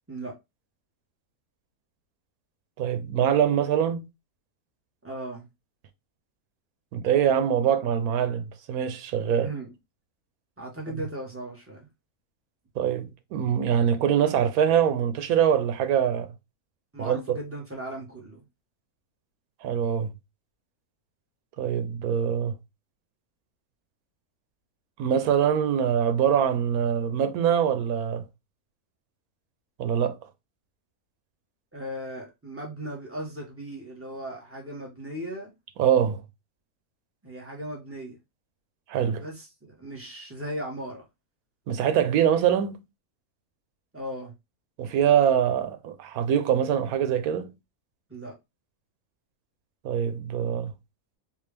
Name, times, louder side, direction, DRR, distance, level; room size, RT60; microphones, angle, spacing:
voice 1, 2.8-4.1 6.9-9.5 12.8-16.3 17.0-17.4 19.6-20.1 21.6-22.5 25.0-28.2 29.8-30.2 35.8-36.2 38.9-39.2 41.7-42.8 44.8-47.5 49.8-50.7, right 9 dB, 90° right, 1.1 m, -24 dB
voice 2, 5.0-5.5 9.3-9.7 10.6-11.9 16.9-18.4 31.7-35.5 37.2-38.2 39.2-41.0 43.9-44.3 48.1-48.3, right 1 dB, 10° right, 1.2 m, -37 dB
3.6 x 2.6 x 3.3 m
omnidirectional pair, 1.5 m